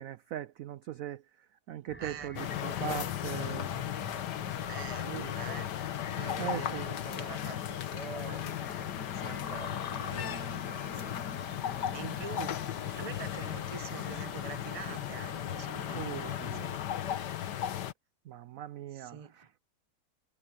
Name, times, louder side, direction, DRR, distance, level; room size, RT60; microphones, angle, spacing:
voice 1, 0.0-3.7 6.4-6.9 12.4-12.5 15.9-16.7 18.2-19.5, right 12 dB, 70° right, 0.8 m, -40 dB
sound 1, 1.9-16.8, equal, 5° left, 5.5 m, -49 dB
voice 2, 2.0-2.4 4.7-5.7 6.1-8.6 9.1-11.1 11.9-16.7 18.9-19.3, right 6 dB, 25° right, 0.8 m, -45 dB
sound 2, 2.4-17.9, left 10 dB, 70° left, 1.6 m, -36 dB
omnidirectional pair, 1.9 m